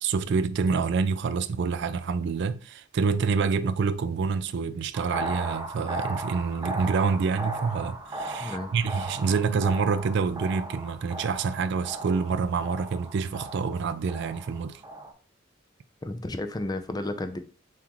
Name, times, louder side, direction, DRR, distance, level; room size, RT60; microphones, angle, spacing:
voice 1, 0.0-14.8, right 5 dB, 60° right, 0.4 m, -27 dB
sound 1, 4.9-15.1, right 2 dB, 20° right, 0.7 m, -37 dB
voice 2, 8.4-8.7 16.0-17.4, left 2 dB, 20° left, 0.5 m, -32 dB
7.1 x 2.5 x 3.0 m
head